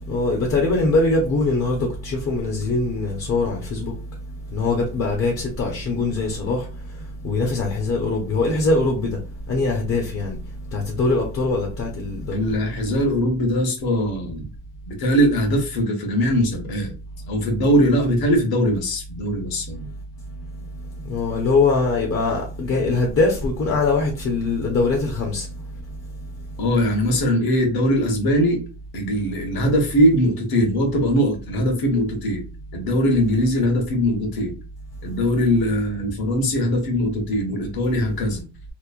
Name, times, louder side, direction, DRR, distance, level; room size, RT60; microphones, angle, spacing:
voice 1, 0.1-3.9 4.5-6.6 7.2-9.2 9.5-10.4 10.7-12.4 21.1-25.5, left 3 dB, 35° left, 0.5 m, -22 dB
voice 2, 12.3-14.5 14.9-16.9 17.3-19.9 26.6-28.6 28.9-32.4 32.7-34.5 35.0-38.4, equal, 60° left, 1.0 m, -21 dB
2.9 x 2.1 x 2.4 m
cardioid pair, 155°, 42 cm